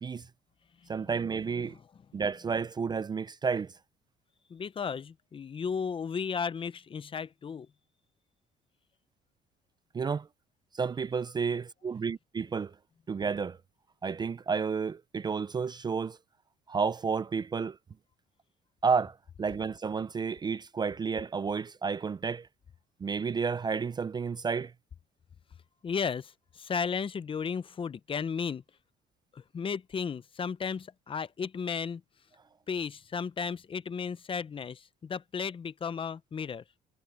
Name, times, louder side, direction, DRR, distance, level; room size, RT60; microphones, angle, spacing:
voice 1, 0.9-1.8 2.1-3.7 9.9-10.3 10.7-12.7 13.1-13.6 14.0-16.2 16.7-17.8 18.8-22.5 23.0-24.7, right 5 dB, 25° right, 0.5 m, -31 dB
voice 2, 4.5-7.7 25.8-28.6 29.3-32.0 32.7-36.6, left 6 dB, 30° left, 0.7 m, -34 dB
cardioid pair, 110°, 17 cm